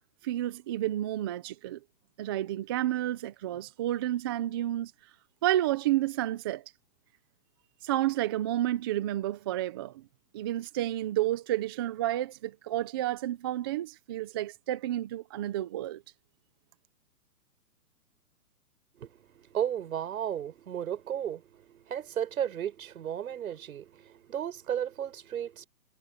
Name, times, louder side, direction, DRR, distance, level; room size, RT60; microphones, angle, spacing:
voice 1, 0.2-1.8 2.2-4.9 5.4-6.6 7.8-9.9 10.3-16.0, right 14 dB, 15° right, 0.6 m, -30 dB
voice 2, 19.0-25.7, right 9 dB, 60° right, 7.1 m, -34 dB
hypercardioid pair, 150°, 48 cm